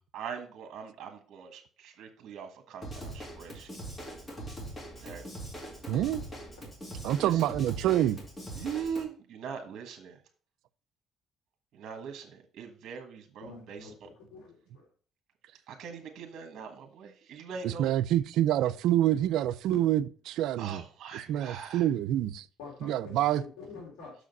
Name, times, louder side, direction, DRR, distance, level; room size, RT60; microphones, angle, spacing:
voice 1, 0.1-3.7 5.0-5.3 7.2-7.5 8.6-10.2 11.7-14.1 15.7-17.9 20.6-21.9, right 6 dB, 60° right, 1.3 m, -41 dB
Drum kit / Drum, 2.8-9.0, right 1 dB, 25° left, 2.3 m, -42 dB
voice 2, 5.9-6.2 7.0-8.2 17.6-20.8 21.3-22.5 22.8-23.4, right 12 dB, 75° right, 0.4 m, -27 dB
voice 3, 13.4-14.9 22.6-23.2 23.6-24.1, left 4 dB, 80° left, 3.0 m, -47 dB
6.5 x 5.0 x 5.3 m
cardioid pair, 100°, 0 cm